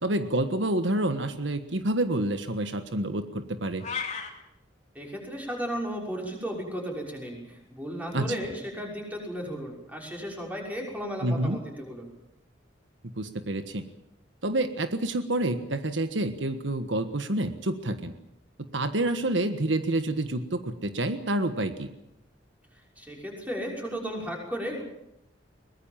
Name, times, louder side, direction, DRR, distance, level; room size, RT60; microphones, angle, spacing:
voice 1, 0.0-3.8 8.1-8.2 11.2-11.6 13.2-13.8 14.4-18.1 18.7-21.9, right 1 dB, 85° right, 9 dB, 1.5 m, -28 dB
sound 1, 3.8-4.3, left 6 dB, 40° left, 3.0 m, -32 dB
voice 2, 4.9-12.1 23.0-24.8, equal, 10° right, -1 dB, 6.1 m, -35 dB
22.5 x 20.0 x 7.4 m, 0.82 s
head